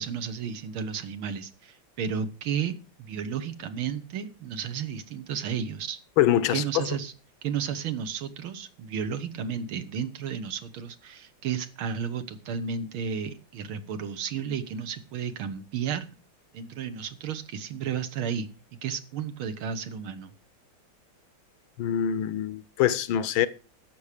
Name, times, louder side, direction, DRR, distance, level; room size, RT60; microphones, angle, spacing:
voice 1, 0.0-6.0 6.5-7.1 7.4-16.1 16.5-18.5 18.8-20.3, right 7 dB, 80° right, 1.9 m, -33 dB
voice 2, 6.2-6.9 21.8-23.5, left 11 dB, 75° left, 1.5 m, -24 dB
15.5 x 6.2 x 5.0 m
omnidirectional pair, 2.2 m